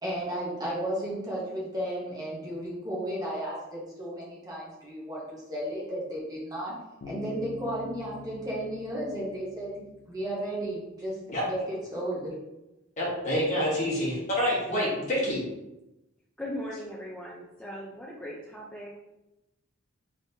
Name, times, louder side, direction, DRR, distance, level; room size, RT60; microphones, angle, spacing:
voice 1, 0.0-6.7 7.0-11.2 11.5-12.3, right 1 dB, 20° right, -6 dB, 0.9 m, -34 dB
Bass guitar, 7.0-10.6, left 4 dB, 70° left, 0.4 m, -45 dB
voice 2, 13.0-15.4, equal, 35° left, -6 dB, 1.3 m, -27 dB
voice 3, 16.4-18.9, left 1 dB, 5° left, -5 dB, 0.4 m, -38 dB
3.4 x 3.0 x 2.7 m, 0.95 s
head